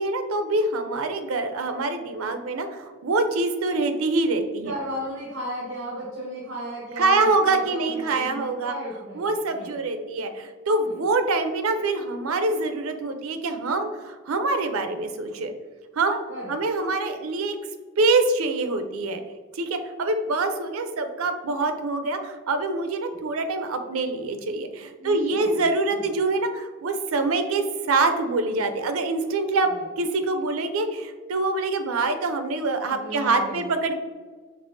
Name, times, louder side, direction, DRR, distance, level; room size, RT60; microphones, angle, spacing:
voice 1, 0.0-4.7 7.0-8.7 9.2-15.5 16.0-17.6 18.0-19.2 19.5-29.7 30.0-34.0, right 3 dB, 90° right, 8 dB, 0.5 m, -25 dB
voice 2, 4.6-9.8 10.8-11.0 16.3-16.6 25.0-25.6 25.9-26.1 29.7-29.8 32.8-33.8, equal, 65° right, -4 dB, 1.0 m, -35 dB
5.4 x 3.3 x 2.6 m, 1.5 s
head